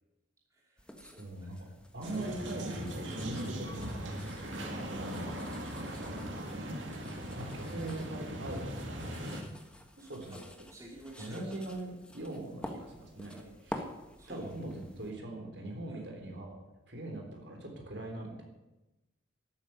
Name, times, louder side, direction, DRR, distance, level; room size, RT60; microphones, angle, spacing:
voice 1, 0.5-1.7 6.5-6.8 10.0-10.4 10.7-11.8 13.3-13.5 14.2-14.4 15.9-16.0, right 1 dB, 15° right, -2 dB, 3.0 m, -51 dB
sound 1, 0.8-15.1, equal, 5° left, 1.4 m, -49 dB
voice 2, 1.2-1.7 1.9-6.1 7.4-8.9 10.1-10.3 11.2-13.4 13.6-13.8 14.3-16.6 16.9-18.4, right 1 dB, 60° right, 1 dB, 3.7 m, -41 dB
sound 2, 2.0-9.4, equal, 75° right, 2.4 m, -39 dB
12.5 x 9.5 x 9.0 m, 1.0 s
head